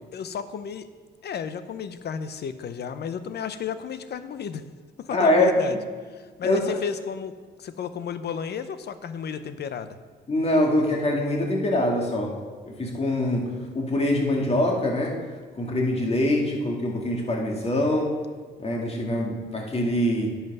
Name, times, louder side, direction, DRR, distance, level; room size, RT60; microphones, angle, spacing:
voice 1, 0.1-0.9 1.2-4.6 5.0-5.7 6.1-10.0, left 7 dB, 55° left, 12 dB, 0.7 m, -33 dB
voice 2, 5.1-5.8 6.4-6.8 10.3-12.4 12.7-15.3 15.6-18.2 18.6-20.4, left 1 dB, 30° left, 0 dB, 2.1 m, -24 dB
10.5 x 5.8 x 5.4 m, 1.5 s
cardioid pair, 90°, 20 cm